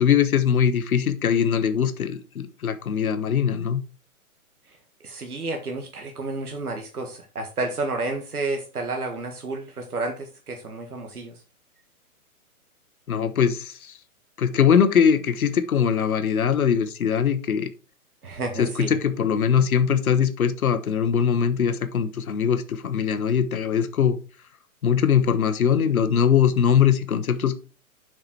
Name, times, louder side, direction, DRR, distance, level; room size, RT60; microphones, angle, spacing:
voice 1, 0.0-3.8 13.1-14.0 14.4-17.7 18.6-24.2 24.8-27.5, left 8 dB, 75° left, 8 dB, 1.3 m, -21 dB
voice 2, 5.0-11.3 18.2-19.0, right 2 dB, 90° right, 3 dB, 1.8 m, -31 dB
7.7 x 6.0 x 4.5 m, 0.35 s
hypercardioid pair, 130°, 43 cm